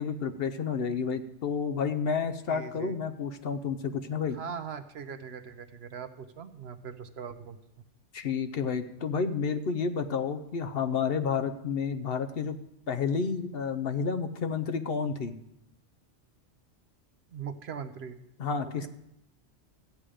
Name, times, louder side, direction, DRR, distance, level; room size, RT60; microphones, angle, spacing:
voice 1, 0.0-4.4 8.1-12.6 12.9-15.3 18.4-18.9, left 5 dB, 60° left, 9 dB, 0.9 m, -30 dB
voice 2, 2.5-3.0 4.2-7.6 17.3-18.2 18.6-18.9, right 7 dB, 65° right, 10 dB, 1.0 m, -41 dB
14.5 x 8.8 x 5.0 m, 0.80 s
omnidirectional pair, 1.2 m